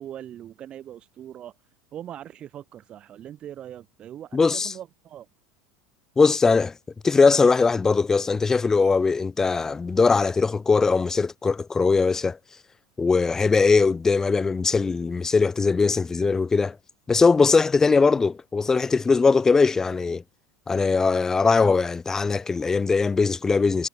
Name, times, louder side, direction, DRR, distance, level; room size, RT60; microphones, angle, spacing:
voice 1, 0.0-1.6 1.9-5.3, right 11 dB, 40° right, 2.2 m, -41 dB
voice 2, 4.3-4.7 6.2-6.7 7.0-12.4 13.0-16.8 17.1-20.2 20.7-23.9, left 4 dB, 20° left, 0.6 m, -20 dB
hypercardioid pair, 85°, 3 cm